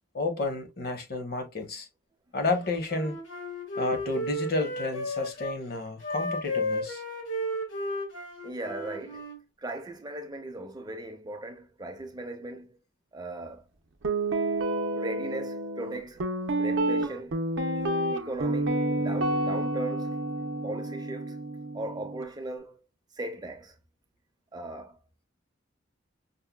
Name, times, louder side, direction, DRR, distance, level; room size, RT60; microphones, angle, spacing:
voice 1, 0.0-1.9 2.3-3.2 3.7-7.0, left 3 dB, 50° left, 0.9 m, -31 dB
Wind instrument woodwind instrument, 2.6-5.6 6.0-9.4, left 1 dB, 75° left, 1.6 m, -33 dB
voice 2, 8.4-9.2 9.6-12.8 13.1-13.7 14.9-16.3 16.6-17.4 18.1-20.2 20.6-21.4 21.7-22.8 23.1-23.8 24.5-25.0, right 1 dB, 20° right, 0.5 m, -38 dB
Guitar, 14.0-22.2, right 2 dB, 70° right, 0.5 m, -29 dB
5.3 x 2.2 x 2.2 m
head